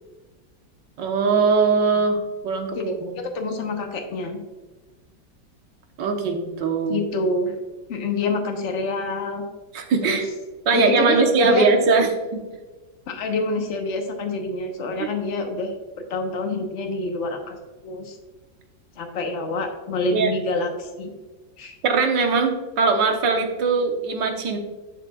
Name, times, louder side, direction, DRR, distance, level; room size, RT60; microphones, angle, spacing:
voice 1, 1.0-3.2 6.0-7.0 9.7-10.2 10.7-12.4 15.0-15.1 20.1-20.3 21.8-24.6, right 4 dB, 70° right, 4 dB, 1.7 m, -21 dB
voice 2, 2.7-4.4 6.9-7.5 7.9-9.4 10.0-10.2 10.7-11.7 13.1-15.7 16.1-17.6 17.8-18.2 19.0-21.1 21.6-21.8, left 3 dB, 45° left, 3 dB, 1.3 m, -27 dB
11.0 x 6.7 x 2.3 m, 1.3 s
omnidirectional pair, 2.1 m